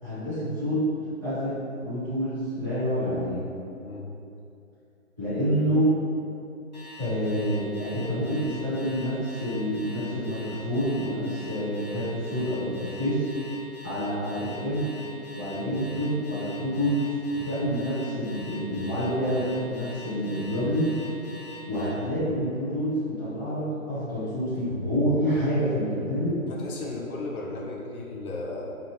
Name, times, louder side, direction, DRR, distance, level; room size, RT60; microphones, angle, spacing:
voice 1, 0.0-0.8 1.2-3.4 5.2-5.9 7.0-13.3 13.8-14.9 15.3-20.9 21.7-26.4, equal, 15° right, -19 dB, 0.8 m, -28 dB
Alarm, 6.7-21.9, left 2 dB, 35° left, 0.5 m, -45 dB
voice 2, 26.5-28.7, left 2 dB, 90° left, -2 dB, 0.7 m, -35 dB
2.8 x 2.1 x 2.8 m, 2.6 s
hypercardioid pair, 170°, 42 cm